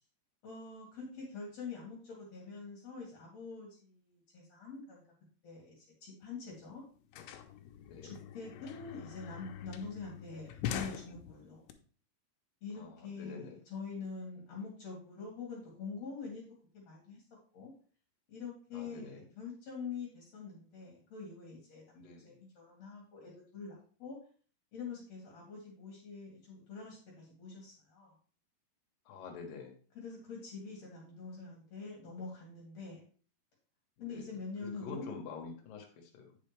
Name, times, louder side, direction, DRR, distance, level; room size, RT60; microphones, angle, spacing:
voice 1, 0.4-5.0 5.4-6.8 8.0-11.6 12.6-16.4 16.7-17.2 17.5-17.7 18.3-24.2 24.7-28.1 30.0-33.0 34.0-35.1, left 4 dB, 50° left, -2 dB, 2.4 m, -45 dB
sound 1, 6.2-6.3 6.5-11.7, left 10 dB, 85° left, 2.7 m, -43 dB
voice 2, 12.7-13.6 18.7-19.3 21.9-22.4 29.1-29.8 34.0-36.4, left 5 dB, 65° left, 3 dB, 2.6 m, -47 dB
8.8 x 5.6 x 3.3 m, 0.42 s
omnidirectional pair, 4.8 m